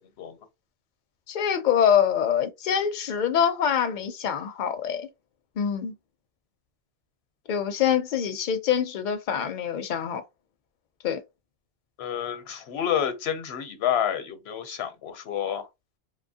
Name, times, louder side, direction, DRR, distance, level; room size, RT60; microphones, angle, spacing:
voice 1, 1.3-5.1 5.6-5.9 7.5-10.2 11.0-11.2, left 8 dB, 55° left, 0.6 m, -25 dB
voice 2, 12.0-15.7, left 9 dB, 80° left, 0.9 m, -29 dB
2.8 x 2.1 x 2.7 m
omnidirectional pair, 1.1 m